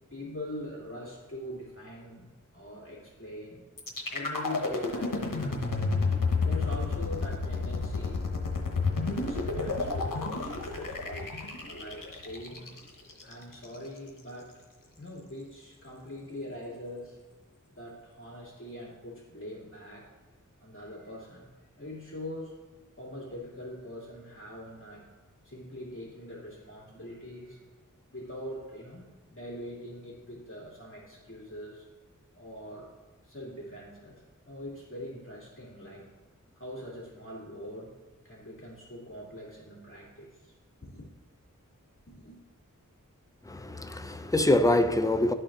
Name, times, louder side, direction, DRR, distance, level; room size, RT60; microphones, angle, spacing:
voice 1, 0.1-3.6 4.1-6.0 6.4-8.3 9.0-12.7 13.2-14.5 15.0-17.2 17.7-20.1 20.6-21.5 21.8-22.5 23.0-25.1 25.4-27.6 28.1-31.9 32.4-32.9 33.2-36.1 36.5-37.9 38.2-40.5 40.8-41.0 42.1-42.4, left 1 dB, 40° left, 2.3 m, -43 dB
sound 1, 3.8-13.8, left 3 dB, 90° left, 0.9 m, -31 dB
voice 2, 43.4-45.3, left 1 dB, 10° left, 0.5 m, -25 dB
11.0 x 4.3 x 3.8 m
wide cardioid pair, 40°, 32 cm